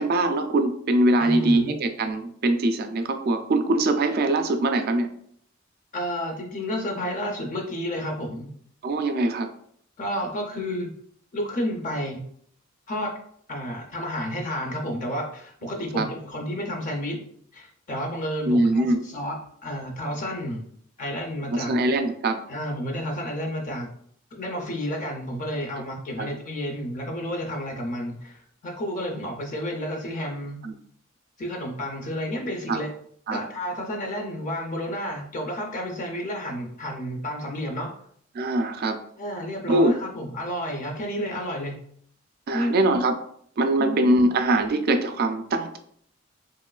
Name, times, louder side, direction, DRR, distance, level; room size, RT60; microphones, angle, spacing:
voice 1, 0.0-5.1 8.8-9.5 16.0-16.1 18.5-19.0 21.5-22.4 26.2-26.3 30.6-30.7 32.7-32.8 33.3-33.4 38.4-39.0 39.7-39.9 42.5-43.2 43.6-45.8, right 2 dB, 50° right, 7 dB, 0.3 m, -22 dB
voice 2, 1.2-1.8 5.9-8.5 10.0-10.9 11.3-12.2 12.9-13.1 13.5-17.2 17.5-20.6 21.0-21.7 22.5-23.9 24.3-30.6 31.4-32.9 33.3-37.9 39.2-41.8 42.5-42.7 43.8-44.3, equal, 40° left, 2 dB, 0.5 m, -31 dB
3.0 x 2.9 x 2.3 m, 0.64 s
head